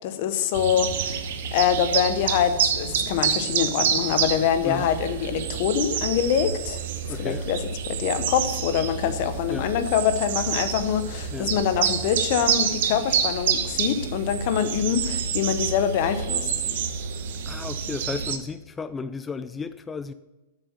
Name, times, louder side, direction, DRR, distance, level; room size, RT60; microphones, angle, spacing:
voice 1, 0.0-6.8 7.2-7.6 7.9-16.5, left 9 dB, 55° left, 0.9 m, -25 dB
sound 1, 0.5-18.4, right 7 dB, 60° right, 0.9 m, -28 dB
voice 2, 7.1-7.5 9.5-9.7 11.3-11.5 17.5-20.1, left 4 dB, 15° left, 0.4 m, -33 dB
7.3 x 6.7 x 6.2 m
hypercardioid pair, 110°, 0 cm